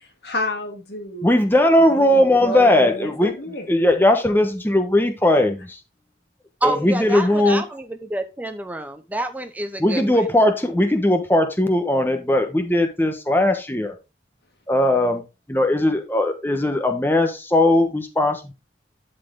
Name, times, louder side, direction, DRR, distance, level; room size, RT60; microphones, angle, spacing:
voice 1, 0.2-1.3 2.0-3.7, left 1 dB, 65° left, 1.9 m, -30 dB
voice 2, 1.2-3.3 3.7-5.8 6.6-7.6 9.8-13.9 14.7-15.2 15.5-18.5, left 1 dB, 10° left, 1.1 m, -18 dB
voice 3, 6.6-10.3, right 2 dB, 10° right, 0.7 m, -28 dB
11.0 x 4.4 x 3.7 m
head